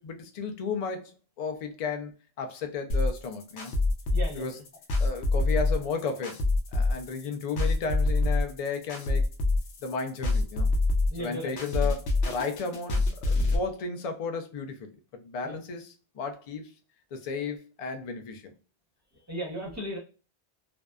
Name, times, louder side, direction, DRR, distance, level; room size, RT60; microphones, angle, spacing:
voice 1, 0.0-2.1 2.4-3.7 4.3-4.6 5.0-6.4 6.7-9.2 9.8-10.7 11.2-14.8 15.1-16.7 17.1-18.5, left 4 dB, 55° left, 0.4 m, -34 dB
sound 1, 2.9-13.6, left 2 dB, 80° left, 0.9 m, -26 dB
voice 2, 4.1-4.4 11.1-11.5 15.4-15.5 19.3-20.0, right 1 dB, 15° right, 0.8 m, -35 dB
2.6 x 2.1 x 2.3 m
omnidirectional pair, 1.1 m